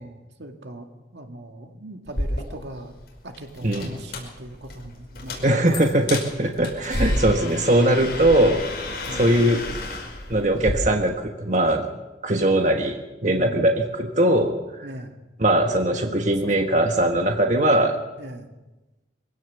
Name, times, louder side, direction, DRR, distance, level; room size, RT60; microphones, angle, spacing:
voice 1, 0.0-3.0 3.2-5.9 6.9-7.5 9.1-9.3 13.2-13.6 14.8-15.2 16.0-16.5 18.2-18.5, right 1 dB, 75° right, 4 dB, 2.2 m, -39 dB
sound 1, 2.1-10.7, left 1 dB, 60° left, 5.3 m, -31 dB
voice 2, 5.4-8.6 9.1-9.8 10.3-11.9 12.2-13.0 13.2-14.5 15.4-18.0, right 1 dB, 40° right, 3 dB, 1.4 m, -20 dB
24.0 x 16.5 x 7.0 m, 1.1 s
head